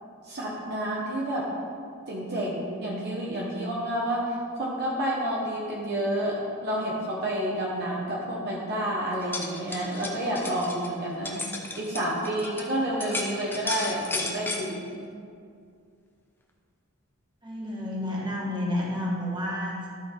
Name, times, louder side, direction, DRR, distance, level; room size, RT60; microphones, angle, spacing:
voice 1, 0.2-1.5 2.1-11.4 11.8-14.9, right 1 dB, 50° right, -4 dB, 1.2 m, -29 dB
sound 1, 9.1-12.7 13.0-14.6, left 2 dB, 10° left, 0.7 m, -34 dB
voice 2, 17.4-19.9, left 1 dB, 20° right, -4 dB, 1.8 m, -30 dB
13.0 x 6.2 x 3.8 m, 2.3 s
head